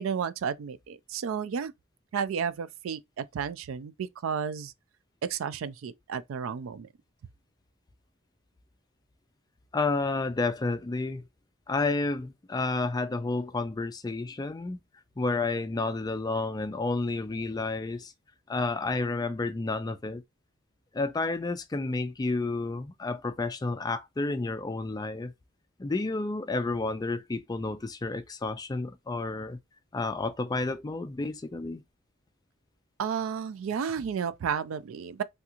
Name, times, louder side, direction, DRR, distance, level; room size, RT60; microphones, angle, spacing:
voice 1, 0.0-1.7 2.1-4.7 5.3-6.9 33.0-35.2, right 7 dB, 80° right, 0.4 m, -32 dB
voice 2, 9.7-11.2 11.7-14.8 15.2-18.1 18.5-20.2 20.9-25.3 25.8-29.6 29.9-31.8, left 3 dB, 20° left, 0.3 m, -30 dB
3.5 x 2.8 x 2.4 m
head